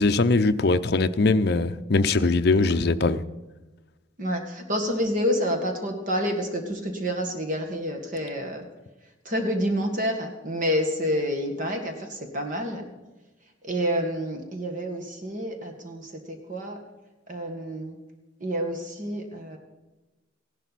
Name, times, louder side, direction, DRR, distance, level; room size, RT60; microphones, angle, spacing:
voice 1, 0.0-3.2, left 3 dB, 50° left, 10 dB, 0.6 m, -21 dB
voice 2, 4.2-8.7 9.2-12.9 13.6-16.8 17.3-17.9 18.4-19.6, equal, 40° right, 4 dB, 1.6 m, -28 dB
16.0 x 11.5 x 4.1 m, 1.1 s
head